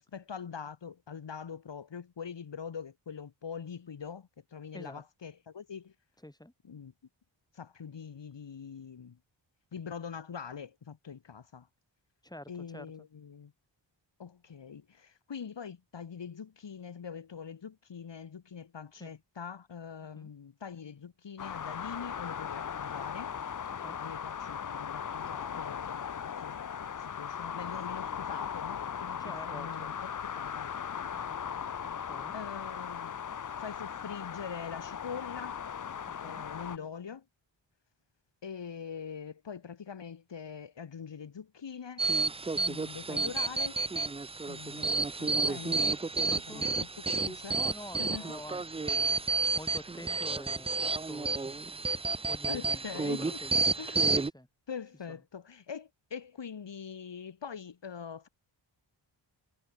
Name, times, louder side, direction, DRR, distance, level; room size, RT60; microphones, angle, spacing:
voice 1, 0.0-5.9 6.7-6.9 7.5-9.2 9.7-11.7 12.5-13.5 14.2-23.3 24.0-29.9 30.2-30.7 32.3-33.1 33.6-35.6 36.2-37.2 38.4-42.1 42.5-43.8 44.5-47.6 48.0-48.3 52.5-54.1 54.7-58.3, left 6 dB, 70° left, 2.2 m, -43 dB
voice 2, 6.2-6.5 12.2-12.9 19.0-19.1 20.1-20.3 23.8-24.0 29.2-29.9 31.1-31.6 32.1-32.3 36.0-36.4 46.3-46.6 47.5-51.6 52.3-54.5 55.1-55.2, left 1 dB, 10° left, 6.5 m, -47 dB
sound 1, 21.4-36.8, left 7 dB, 45° left, 0.7 m, -38 dB
sound 2, 42.0-54.3, right 3 dB, 15° right, 0.3 m, -31 dB
wide cardioid pair, 115°, 46 cm